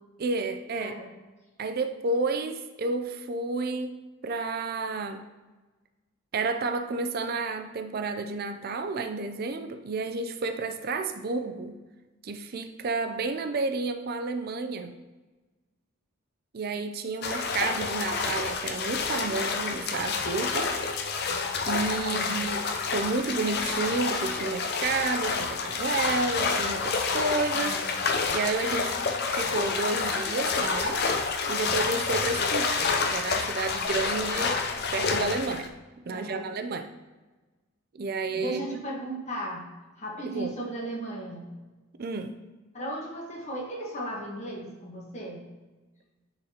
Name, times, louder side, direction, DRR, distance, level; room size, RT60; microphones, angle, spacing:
voice 1, 0.2-0.9 1.6-4.0 4.2-5.2 6.3-11.8 12.2-14.9 16.5-20.7 21.7-22.7 22.9-27.7 28.3-29.0 29.3-31.0 31.5-34.6 34.9-35.7 36.1-36.9 37.9-38.6 40.3-40.5 42.0-42.4, right 3 dB, 45° right, 7 dB, 0.4 m, -31 dB
voice 2, 0.7-1.1 22.0-22.3 27.5-27.9 36.1-36.5 38.3-39.7 40.0-41.5 42.7-45.4, right 1 dB, 30° left, -2 dB, 1.3 m, -36 dB
sound 1, 17.2-35.7, left 4 dB, 50° left, 0.5 m, -28 dB
9.8 x 4.0 x 2.9 m, 1.2 s
head